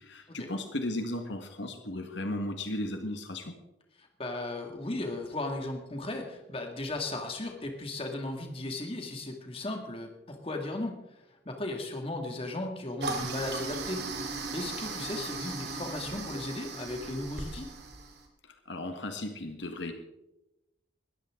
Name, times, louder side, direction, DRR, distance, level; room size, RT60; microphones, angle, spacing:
voice 1, 0.0-3.5 18.7-19.9, left 1 dB, 75° left, 5 dB, 1.6 m, -35 dB
voice 2, 4.2-17.7, left 2 dB, 30° left, 3 dB, 2.2 m, -36 dB
Toilet flush, 13.0-18.2, right 3 dB, 60° right, 2.7 m, -37 dB
20.5 x 14.0 x 3.8 m, 0.93 s
head